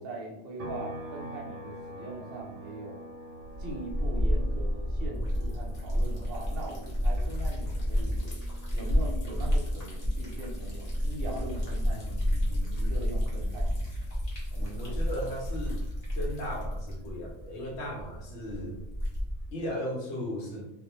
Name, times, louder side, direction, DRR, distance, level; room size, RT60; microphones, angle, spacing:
voice 1, 0.0-3.0 3.6-8.2 8.7-13.9 14.5-15.0, right 2 dB, 60° right, -1 dB, 0.8 m, -41 dB
sound 1, 0.6-14.1 14.5-16.7, right 1 dB, 90° right, 0.9 m, -48 dB
Liquid, 3.4-19.5, equal, 40° left, 0.7 m, -31 dB
voice 2, 14.8-15.8 16.1-18.8 19.5-20.7, equal, 75° left, -1 dB, 0.9 m, -36 dB
2.2 x 2.1 x 2.9 m, 0.88 s
omnidirectional pair, 1.2 m